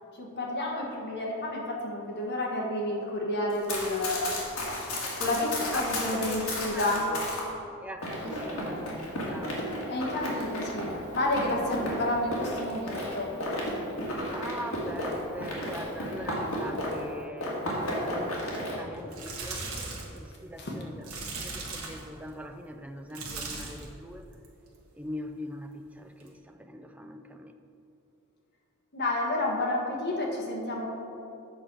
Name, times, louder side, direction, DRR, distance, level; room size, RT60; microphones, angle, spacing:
voice 1, 0.2-4.4 5.2-7.0 8.2-8.4 9.9-10.9 11.1-13.3 20.6-20.8 28.9-30.9, left 1 dB, 50° left, -2 dB, 1.4 m, -30 dB
Run, 3.5-7.5 8.0-17.1 17.4-18.8, left 1 dB, 70° left, 1.8 m, -33 dB
voice 2, 6.1-7.3 7.5-9.6 14.3-17.6 18.1-19.7 20.1-24.3 24.9-27.6, equal, 5° right, 7 dB, 0.4 m, -42 dB
sound 1, 19.0-20.2 21.0-22.1 23.1-23.9 24.3-24.7 26.2-26.3, right 3 dB, 70° right, 1.4 m, -38 dB
8.0 x 4.7 x 6.1 m, 2.7 s
head